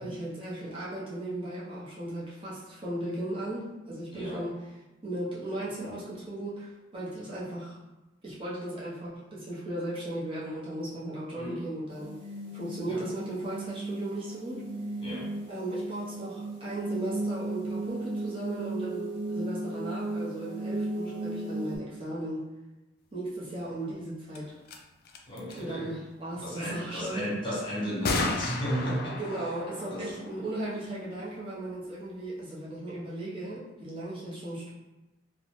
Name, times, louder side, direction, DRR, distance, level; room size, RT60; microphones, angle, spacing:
voice 1, 0.0-4.6 5.0-7.8 8.2-12.2 12.5-14.7 15.5-22.5 23.1-24.6 25.5-27.3 29.2-34.7, right 1 dB, 30° right, -7 dB, 0.6 m, -36 dB
voice 2, 4.1-4.4 11.4-11.7 12.9-13.0 15.0-15.4 25.3-25.9 26.3-29.2 29.9-30.2, equal, 25° left, -6 dB, 0.7 m, -34 dB
sound 1, 11.9-21.8, right 2 dB, 70° right, 1.0 m, -35 dB
sound 2, 24.3-24.4 24.7-24.8 25.0-25.6 28.0-31.4, left 3 dB, 50° left, 0.3 m, -34 dB
2.6 x 2.0 x 3.0 m, 1.0 s
head